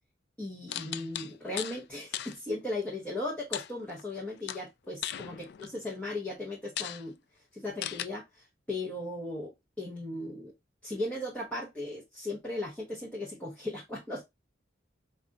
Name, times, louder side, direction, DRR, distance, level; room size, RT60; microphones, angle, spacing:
voice 1, 0.4-7.2 7.5-10.5 10.8-14.2, left 2 dB, 5° left, 1.0 m, -37 dB
sound 1, 0.7-1.8 2.1-2.4 3.5-4.2 4.5-5.8 6.3-6.4 6.8-7.0 7.8-8.1, left 11 dB, 60° left, 0.3 m, -37 dB
4.9 x 2.5 x 2.5 m
head